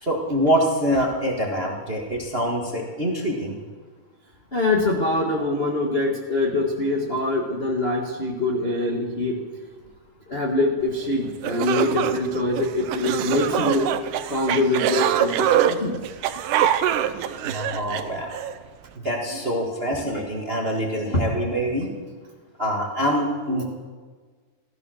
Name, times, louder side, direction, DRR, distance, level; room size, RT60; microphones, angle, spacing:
voice 1, 0.0-3.6 17.4-18.4 19.0-21.9 22.6-23.6, equal, 25° right, 0 dB, 1.3 m, -25 dB
voice 2, 4.5-9.4 10.3-13.9 14.3-16.0 19.3-19.7 20.1-20.2 21.0-21.3 23.5-23.6, left 2 dB, 35° left, -2 dB, 1.0 m, -24 dB
sound 1, 11.0-11.1 11.4-18.5, right 10 dB, 80° right, 2.3 m, -24 dB
16.0 x 13.5 x 6.4 m, 1.5 s
omnidirectional pair, 3.7 m